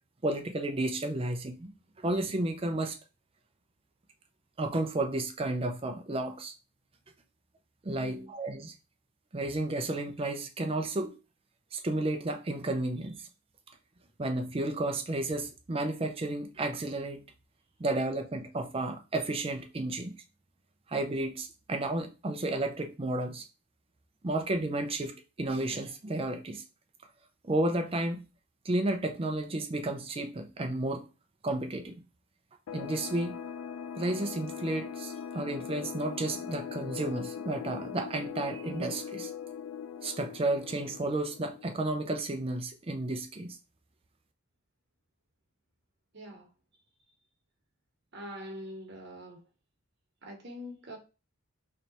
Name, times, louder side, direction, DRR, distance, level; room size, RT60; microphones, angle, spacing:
voice 1, 0.2-1.7 2.0-3.0 4.6-6.5 7.8-8.7 9.3-11.2 11.7-13.3 14.2-17.2 17.8-20.1 20.9-23.4 24.2-26.6 27.4-28.2 28.6-31.1 31.4-32.0 32.7-33.4 34.0-39.3 40.0-43.6, right 2 dB, 25° right, 0.5 m, -32 dB
voice 2, 8.0-8.3 46.1-46.5 48.1-49.4 50.2-51.0, equal, 55° right, 1.1 m, -43 dB
sound 1, 32.7-42.0, left 7 dB, 85° left, 0.4 m, -41 dB
3.3 x 2.8 x 4.1 m
head